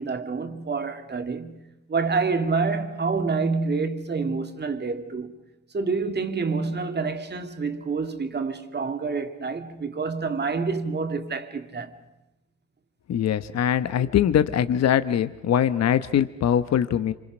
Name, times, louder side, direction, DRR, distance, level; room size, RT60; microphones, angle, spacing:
voice 1, 0.0-1.6 1.9-5.4 5.7-12.0, right 4 dB, 35° right, 2.3 m, -27 dB
voice 2, 13.1-17.1, left 9 dB, 60° left, 1.1 m, -22 dB
27.0 x 26.5 x 6.2 m
cardioid pair, 90°, 30 cm